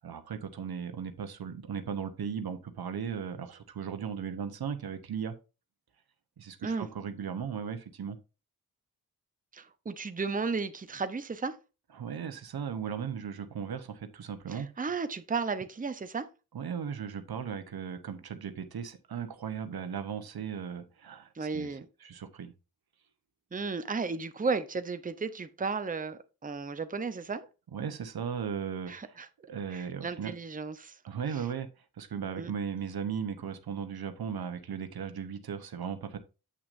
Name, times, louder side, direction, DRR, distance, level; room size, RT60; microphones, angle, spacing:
voice 1, 0.0-5.3 6.4-8.2 11.9-14.7 16.5-22.5 27.7-29.2 29.5-30.3 31.0-31.7 32.0-36.2, right 7 dB, 85° right, 0.9 m, -37 dB
voice 2, 9.5-11.6 14.5-16.3 21.3-21.9 23.5-27.5 28.9-29.3 29.7-31.0 32.4-32.5, right 4 dB, 25° right, 0.7 m, -34 dB
8.1 x 6.0 x 2.5 m
cardioid pair, 55°, 36 cm